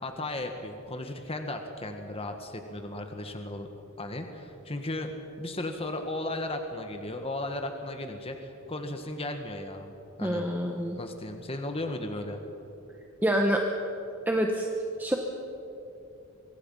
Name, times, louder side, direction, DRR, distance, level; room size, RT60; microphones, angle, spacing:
voice 1, 0.0-3.7 4.0-5.1 5.4-9.9 10.2-10.5 11.0-12.4, left 1 dB, 30° left, 5 dB, 1.5 m, -35 dB
voice 2, 10.2-11.0 13.2-13.6 14.3-14.7 15.0-15.2, equal, 10° right, 1 dB, 1.3 m, -26 dB
24.5 x 24.0 x 5.7 m, 2.9 s
head